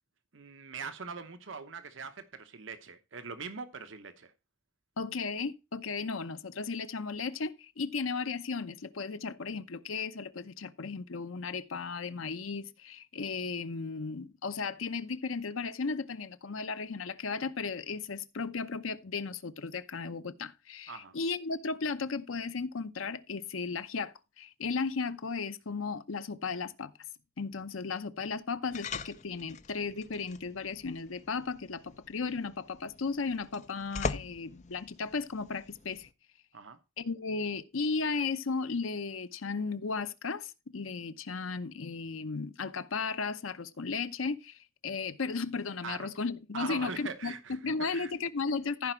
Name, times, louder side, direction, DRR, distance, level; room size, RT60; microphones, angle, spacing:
voice 1, 0.3-4.3 20.9-21.2 36.5-36.8 45.8-46.1 46.5-48.1, right 5 dB, 70° right, 0.9 m, -42 dB
voice 2, 5.0-26.9 27.4-36.1 37.0-47.3 47.6-48.9, left 4 dB, 90° left, 0.8 m, -35 dB
sound 1, 28.7-36.1, left 4 dB, 35° left, 0.5 m, -42 dB
14.5 x 5.1 x 4.5 m
head